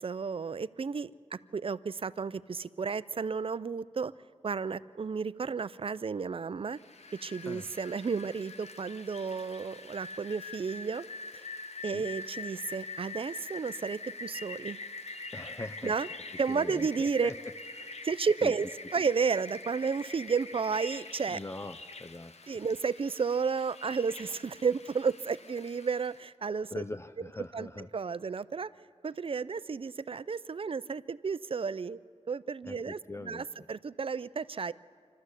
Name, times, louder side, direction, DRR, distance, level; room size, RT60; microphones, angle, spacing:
voice 1, 0.0-4.1 4.4-6.8 7.2-11.0 11.3-11.4 11.8-14.8 15.8-16.1 16.4-17.3 18.0-21.4 22.5-26.8 27.5-28.7 29.0-32.0 32.3-34.7, right 5 dB, 50° right, 17 dB, 0.4 m, -32 dB
Rain, 6.8-26.2, left 3 dB, 70° left, 0.9 m, -45 dB
voice 2, 15.3-16.0 16.5-17.3 17.8-18.1 18.4-18.5 21.3-22.3 26.7-27.9 32.7-33.5, left 2 dB, 25° left, 10 dB, 0.4 m, -41 dB
26.0 x 13.0 x 8.2 m, 2.1 s
wide cardioid pair, 95°, 12 cm